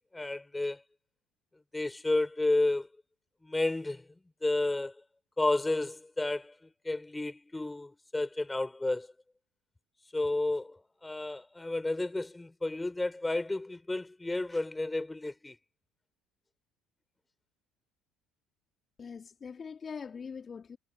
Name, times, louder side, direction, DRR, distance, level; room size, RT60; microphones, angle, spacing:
voice 1, 0.1-0.8 1.7-2.9 3.4-4.1 4.4-4.9 5.4-6.5 6.8-9.1 10.1-15.6, left 2 dB, 10° left, 4.1 m, -31 dB
voice 2, 19.0-20.8, left 6 dB, 30° left, 2.6 m, -42 dB
figure-of-eight pair, 60°, 0 cm